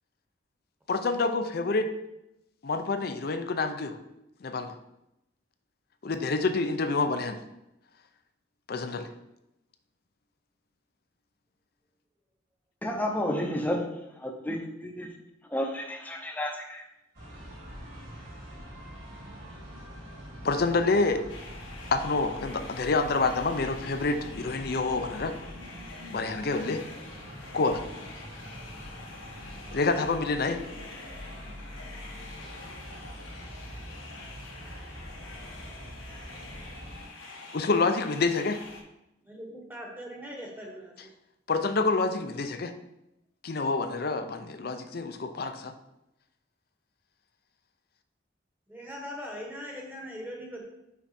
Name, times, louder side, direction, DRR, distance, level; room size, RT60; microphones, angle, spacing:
voice 1, 0.9-1.9 2.6-4.0 4.4-4.7 6.0-7.4 8.7-9.1 20.4-21.2 21.9-25.3 26.1-26.8 27.5-27.8 29.7-30.6 37.5-38.6 41.5-42.7 43.4-45.7, left 3 dB, 50° left, 8 dB, 0.5 m, -27 dB
voice 2, 12.8-13.8 14.5-14.6 14.8-15.1 15.5-16.8, left 1 dB, 10° left, 2 dB, 0.7 m, -30 dB
sound 1, 17.1-37.1, equal, 55° right, 2.6 m, -44 dB
sound 2, 21.3-38.8, left 3 dB, 85° left, 1.3 m, -47 dB
voice 3, 39.2-41.1 48.7-50.6, equal, 10° right, -1 dB, 1.1 m, -40 dB
5.9 x 4.8 x 4.2 m, 0.88 s
head